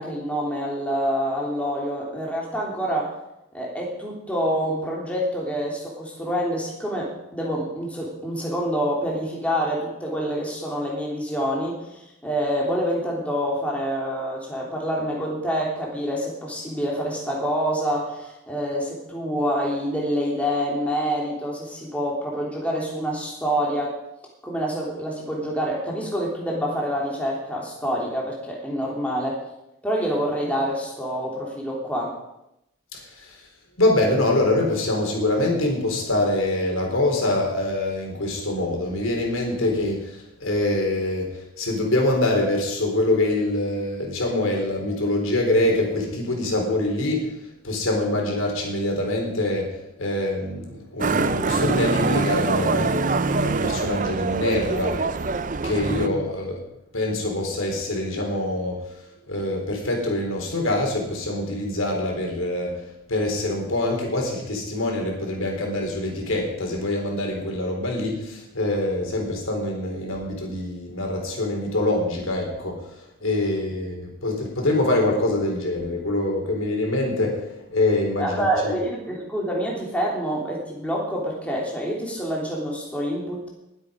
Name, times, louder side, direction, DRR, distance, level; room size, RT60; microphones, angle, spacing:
voice 1, 0.0-3.1 3.5-24.0 24.4-29.4 29.8-32.2 55.9-56.1 78.2-83.5, equal, 5° left, -3 dB, 3.2 m, -27 dB
voice 2, 32.9-33.4 33.8-41.3 41.6-47.3 47.6-49.7 50.0-55.0 55.6-56.6 56.9-58.8 59.3-62.8 63.1-72.8 73.2-78.7, left 1 dB, 85° left, 1 dB, 3.9 m, -24 dB
Motorcycle, 51.0-56.1, right 3 dB, 40° right, 0.5 m, -24 dB
21.0 x 8.2 x 5.1 m, 0.87 s
head